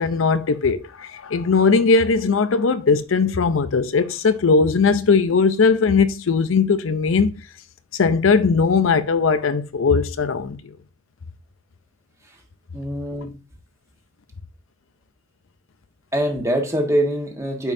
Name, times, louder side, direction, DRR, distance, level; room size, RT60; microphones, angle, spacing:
voice 1, 0.0-7.3 7.9-10.7, left 4 dB, 80° left, 0.6 m, -19 dB
voice 2, 12.7-13.3 16.1-17.7, right 1 dB, 15° right, 1.4 m, -23 dB
9.0 x 5.4 x 2.7 m
head